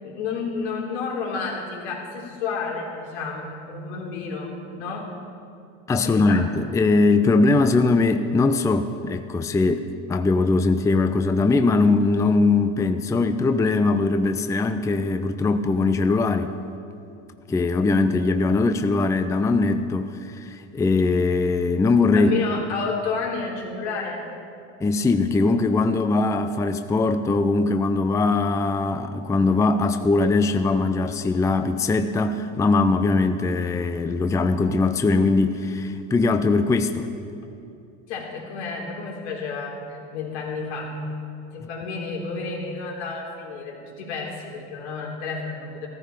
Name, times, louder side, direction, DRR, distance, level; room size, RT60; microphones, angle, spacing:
voice 1, 0.0-5.2 6.0-6.5 22.1-24.2 38.1-41.0 41.5-45.9, left 4 dB, 80° left, -1 dB, 3.6 m, -31 dB
voice 2, 5.9-16.5 17.5-22.4 24.8-37.1, left 3 dB, 10° left, 8 dB, 0.5 m, -21 dB
15.0 x 14.5 x 5.0 m, 2.6 s
supercardioid pair, 110°, 34 cm